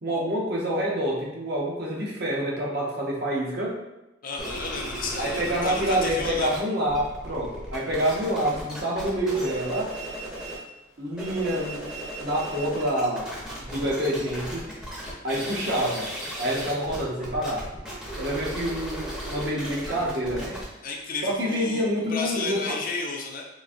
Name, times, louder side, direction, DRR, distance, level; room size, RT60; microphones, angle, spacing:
voice 1, 0.0-3.8 5.2-9.9 11.0-11.9 12.2-13.3 13.6-14.6 15.2-16.1 16.4-17.6 18.2-20.6 21.2-22.8, right 1 dB, 50° right, -3 dB, 0.7 m, -27 dB
voice 2, 4.2-6.5 20.8-23.4, left 4 dB, 45° left, 0 dB, 0.4 m, -32 dB
sound 1, 4.4-6.6 6.8-10.7 11.0-22.6, right 1 dB, 5° right, 0.6 m, -36 dB
3.8 x 2.6 x 2.5 m, 0.96 s
head